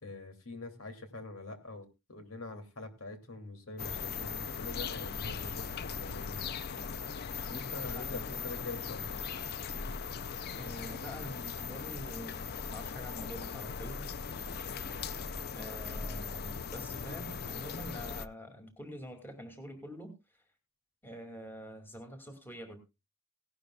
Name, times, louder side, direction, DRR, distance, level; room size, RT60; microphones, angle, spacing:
voice 1, 0.0-6.5 7.4-9.2, left 2 dB, 80° left, 7 dB, 2.7 m, -44 dB
sound 1, 3.8-18.3, left 6 dB, 50° left, 0.5 m, -39 dB
voice 2, 7.9-8.5 10.5-14.1 15.0-20.1 21.0-22.8, equal, 10° left, 4 dB, 2.5 m, -46 dB
17.5 x 11.5 x 2.3 m, 0.26 s
head